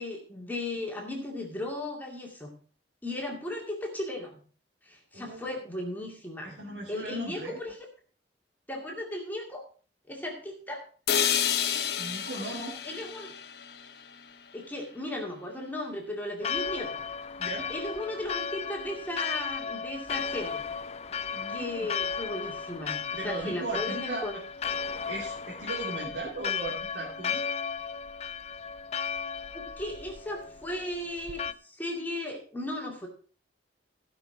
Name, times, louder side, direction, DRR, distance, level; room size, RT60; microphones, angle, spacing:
voice 1, 0.0-2.5 3.0-4.4 4.8-6.6 6.9-7.8 8.7-9.6 10.1-10.9 12.8-13.3 14.5-17.0 17.7-20.6 21.5-24.4 29.5-33.1, left 1 dB, 10° left, 0 dB, 2.3 m, -36 dB
voice 2, 5.1-5.6 6.4-7.6 12.0-12.8 17.4-17.7 21.3-21.9 23.2-24.2 25.0-27.4, right 2 dB, 80° right, -3 dB, 2.6 m, -37 dB
sound 1, 11.1-15.1, left 9 dB, 65° left, 1.0 m, -31 dB
Church bell, 16.4-31.5, left 6 dB, 35° left, 0.4 m, -35 dB
16.0 x 6.1 x 4.9 m, 0.40 s
head